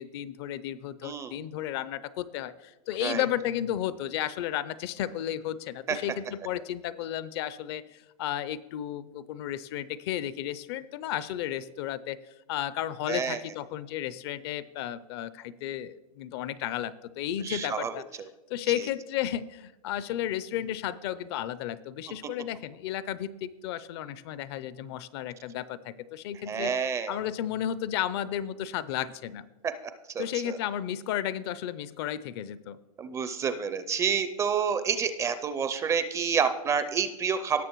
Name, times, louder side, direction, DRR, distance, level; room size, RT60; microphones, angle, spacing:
voice 1, 0.0-18.0 18.5-26.7 27.1-29.5 30.2-32.8, left 11 dB, 45° left, 17 dB, 0.5 m, -33 dB
voice 2, 1.0-1.3 3.0-3.2 5.9-6.0 13.1-13.4 17.4-17.9 26.5-27.2 29.6-29.7 30.1-30.6 33.0-37.6, right 6 dB, 15° right, 11 dB, 0.4 m, -28 dB
18.0 x 6.6 x 3.0 m, 1.1 s
hypercardioid pair, 145°, 19 cm